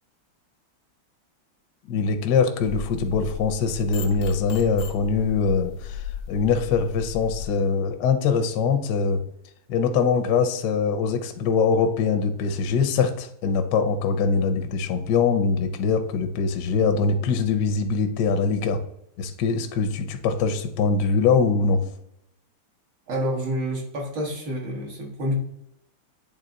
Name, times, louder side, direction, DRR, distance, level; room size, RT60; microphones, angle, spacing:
voice 1, 1.9-9.2 9.7-18.8 19.2-21.8, left 5 dB, 65° left, 8 dB, 1.1 m, -23 dB
sound 1, 2.6-7.5, left 7 dB, 85° left, 1.6 m, -35 dB
voice 2, 23.1-25.3, equal, 60° right, -2 dB, 2.1 m, -28 dB
8.8 x 3.4 x 3.9 m, 0.78 s
omnidirectional pair, 2.4 m